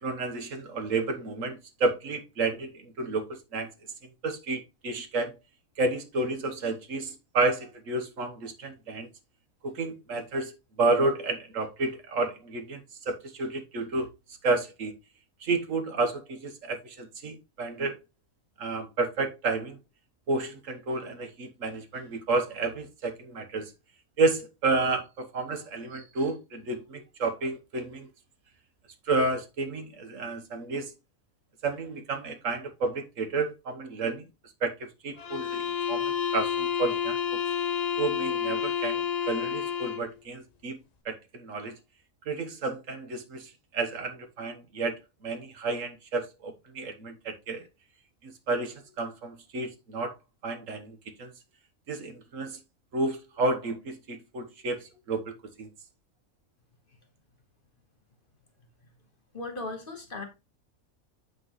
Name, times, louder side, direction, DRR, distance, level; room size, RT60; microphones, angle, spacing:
voice 1, 0.0-3.7 4.2-5.4 5.8-9.1 9.6-12.8 13.0-14.1 14.4-14.9 15.4-17.9 18.6-19.8 20.3-23.7 24.2-28.1 29.1-30.9 31.6-34.3 34.6-37.4 38.0-40.8 41.0-41.7 42.3-47.7 48.2-50.1 50.4-51.3 51.9-52.6 52.9-55.3 55.6-55.7, right 3 dB, 65° right, 1.5 m, -31 dB
sound 1, 35.2-40.1, left 8 dB, 55° left, 0.4 m, -29 dB
voice 2, 59.3-60.2, left 2 dB, 40° left, 1.5 m, -37 dB
7.9 x 6.0 x 3.0 m
omnidirectional pair, 1.4 m